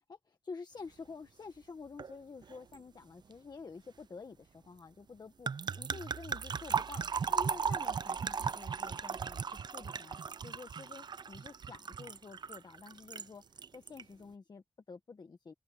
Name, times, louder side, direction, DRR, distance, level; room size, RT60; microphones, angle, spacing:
voice 1, 0.0-15.5, left 4 dB, 60° left, 1.4 m, -49 dB
sound 1, 2.0-2.1 2.4-2.8 5.5-13.3 13.6-14.0, right 6 dB, 65° right, 0.5 m, -37 dB
wide cardioid pair, 90°, 8 cm